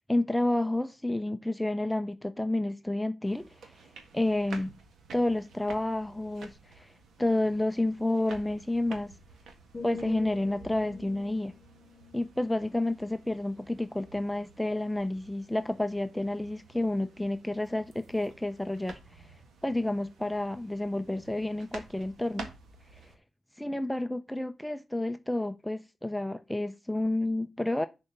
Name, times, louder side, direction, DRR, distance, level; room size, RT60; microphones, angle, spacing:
voice 1, 0.0-3.8 4.1-4.7 5.1-6.9 7.2-9.1 9.8-11.5 12.1-19.2 19.6-22.5 23.6-27.9, left 1 dB, 5° left, 0.5 m, -30 dB
sound 1, 3.3-23.1, right 4 dB, 85° right, 1.6 m, -51 dB
sound 2, 9.7-13.6 14.1-14.4, left 5 dB, 30° left, 0.8 m, -46 dB
6.9 x 4.4 x 6.7 m
cardioid pair, 95°, 0 cm